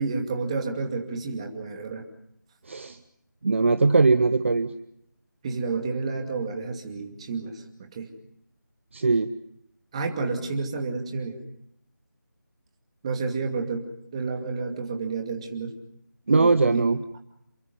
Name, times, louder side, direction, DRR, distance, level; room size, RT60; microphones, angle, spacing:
voice 1, 0.0-2.0 5.4-8.1 9.9-11.4 13.0-13.9 14.1-15.8 16.3-17.0, right 4 dB, 20° right, 3 dB, 2.5 m, -30 dB
voice 2, 2.7-3.0 3.4-4.7 8.9-9.3 16.3-17.0, right 3 dB, 40° right, 11 dB, 0.9 m, -20 dB
28.5 x 23.0 x 5.5 m, 0.74 s
figure-of-eight pair, 165°, 11 cm